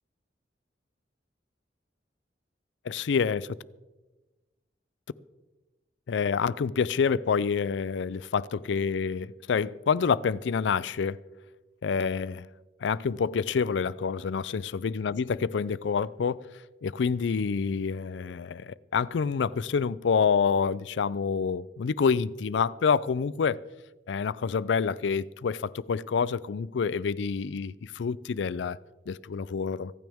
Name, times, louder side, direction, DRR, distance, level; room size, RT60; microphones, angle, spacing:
voice 1, 2.9-3.5 6.1-11.2 11.8-12.5 12.8-16.5 16.8-23.6 24.1-28.8 29.1-29.9, left 6 dB, 85° left, 0.4 m, -27 dB
25.0 x 9.2 x 3.5 m
head